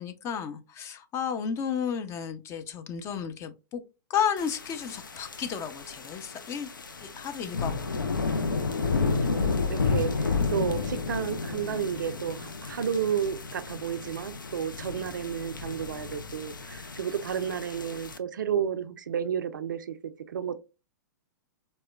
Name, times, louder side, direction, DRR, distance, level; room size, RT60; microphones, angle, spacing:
voice 1, 0.0-3.8 4.1-6.7 7.0-7.9, left 7 dB, 25° left, 0.5 m, -32 dB
sound 1, 4.4-18.2, left 4 dB, 90° left, 0.4 m, -32 dB
voice 2, 9.0-20.6, right 8 dB, 75° right, 0.4 m, -32 dB
4.2 x 2.1 x 2.2 m
hypercardioid pair, 110°, 11 cm